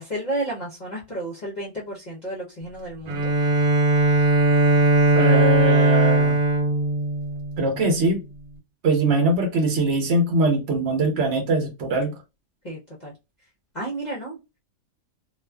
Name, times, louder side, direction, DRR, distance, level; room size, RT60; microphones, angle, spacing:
voice 1, 0.0-3.3 12.6-13.1 13.7-14.4, right 1 dB, 45° left, 0.6 m, -32 dB
Bowed string instrument, 3.1-7.9, right 2 dB, 85° right, 1.2 m, -19 dB
voice 2, 5.1-6.4 7.6-8.2 8.8-12.1, right 2 dB, 60° right, 0.9 m, -22 dB
2.4 x 2.4 x 2.2 m
omnidirectional pair, 1.5 m